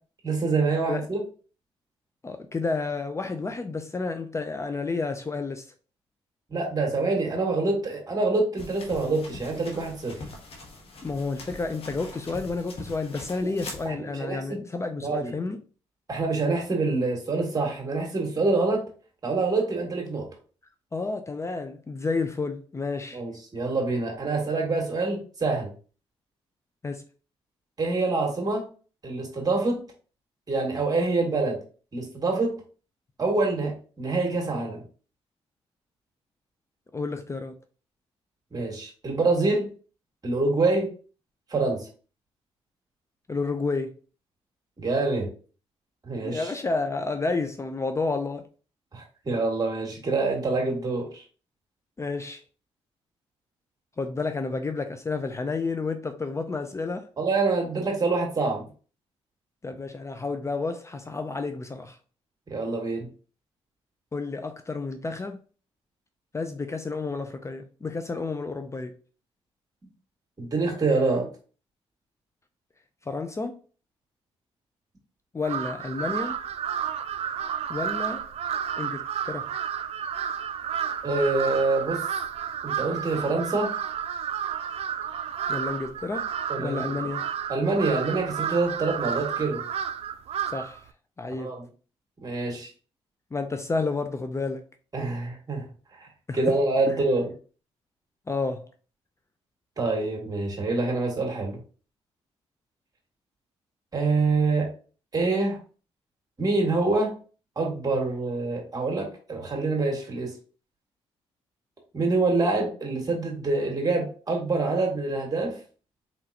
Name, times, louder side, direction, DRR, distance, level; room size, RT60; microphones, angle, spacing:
voice 1, 0.2-1.2 6.5-10.2 13.4-13.5 13.9-14.6 15.0-15.3 16.1-18.8 19.2-20.3 23.1-25.7 27.8-28.7 29.0-29.8 30.5-31.6 31.9-32.6 33.2-34.8 38.5-39.7 40.2-40.9 41.5-41.9 44.8-45.3 46.0-46.5 48.9-51.2 57.2-58.7 62.5-63.1 70.4-71.3 81.0-82.0 82.6-83.7 86.5-87.0 87.5-89.6 91.4-91.7 92.2-92.7 94.9-95.7 96.0-96.1 96.3-97.3 99.8-101.6 103.9-104.7 105.1-105.6 106.4-107.1 107.6-110.3 111.9-115.6, right 3 dB, 35° right, 2.1 m, -26 dB
voice 2, 2.2-5.7 11.0-15.6 20.9-23.2 26.8-27.0 36.9-37.5 43.3-44.0 46.2-48.4 52.0-52.4 54.0-57.1 59.6-62.0 64.1-65.4 66.3-68.9 73.1-73.6 75.3-76.4 77.7-78.3 78.8-79.5 85.5-86.3 86.6-87.3 90.4-90.8 91.2-91.6 93.3-94.7 96.3-96.6 96.9-97.0 98.3-98.7, left 3 dB, 25° left, 0.5 m, -30 dB
sound 1, 8.6-13.9, left 2 dB, 60° left, 1.3 m, -42 dB
Crow, 75.4-90.8, right 8 dB, 70° right, 0.4 m, -31 dB
4.4 x 3.8 x 2.8 m
cardioid pair, 70°, 11 cm